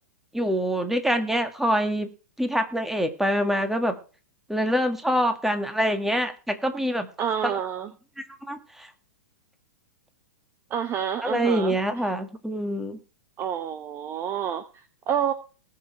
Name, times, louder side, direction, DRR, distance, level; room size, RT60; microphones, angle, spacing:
voice 1, 0.3-2.1 2.4-3.9 4.5-7.1 7.4-7.5 8.5-8.9 11.2-13.0, equal, 5° right, 7 dB, 1.9 m, -25 dB
voice 2, 7.2-7.9 10.7-11.8 13.4-15.3, right 8 dB, 25° right, 11 dB, 0.9 m, -28 dB
19.5 x 6.6 x 4.5 m, 0.36 s
hypercardioid pair, 110°, 9 cm